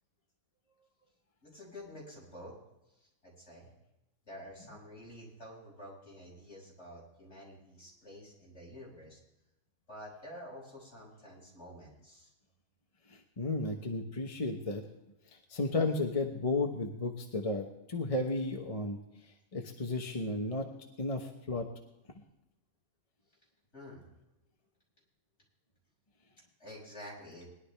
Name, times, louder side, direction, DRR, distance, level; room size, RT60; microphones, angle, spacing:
voice 1, 1.4-2.5 3.0-3.7 4.3-9.2 9.9-12.3 23.7-24.1 26.6-27.5, equal, 50° left, -4 dB, 6.9 m, -49 dB
voice 2, 13.4-14.8 15.5-19.0 19.5-20.7 21.0-21.7, left 2 dB, 25° left, 2 dB, 1.0 m, -33 dB
20.5 x 11.5 x 3.4 m, 0.91 s
omnidirectional pair, 1.5 m